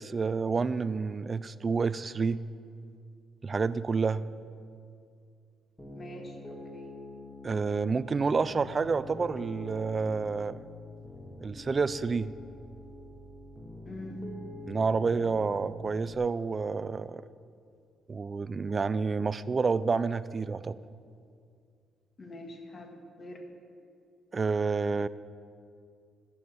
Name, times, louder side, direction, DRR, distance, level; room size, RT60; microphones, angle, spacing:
voice 1, 0.0-2.4 3.4-4.2 7.4-10.6 11.4-12.3 14.7-17.2 18.1-20.7 24.3-25.1, right 4 dB, 35° right, 16 dB, 0.4 m, -29 dB
Piano, 5.8-16.1, left 2 dB, 15° left, 1.9 m, -45 dB
voice 2, 5.9-6.9 13.8-14.2 22.2-23.4, left 1 dB, 40° left, 4 dB, 1.8 m, -44 dB
11.5 x 7.1 x 8.7 m, 2.3 s
cardioid pair, 90°, 0 cm